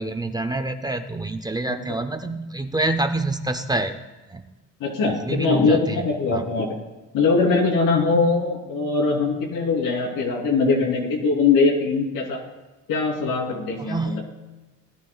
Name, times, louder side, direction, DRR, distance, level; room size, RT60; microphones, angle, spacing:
voice 1, 0.0-4.0 4.3-4.5 5.1-6.0 6.3-6.5 13.8-14.2, right 2 dB, 10° right, 7 dB, 0.6 m, -27 dB
voice 2, 4.8-6.7 7.1-12.4 12.9-14.2, left 4 dB, 80° left, -1 dB, 3.4 m, -21 dB
19.0 x 11.5 x 2.4 m, 1.1 s
cardioid pair, 125°, 32 cm